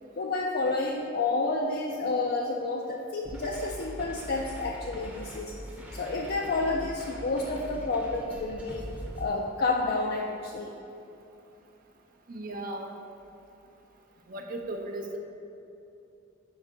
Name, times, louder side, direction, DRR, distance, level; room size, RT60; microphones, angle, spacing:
voice 1, 0.2-5.5 5.9-8.8 9.2-10.7, left 3 dB, 55° left, 0 dB, 0.4 m, -30 dB
sound 1, 3.2-9.3, equal, 5° right, 0.7 m, -42 dB
voice 2, 12.3-12.9 14.3-15.2, right 1 dB, 45° right, 3 dB, 0.5 m, -36 dB
5.4 x 4.4 x 5.0 m, 2.8 s
head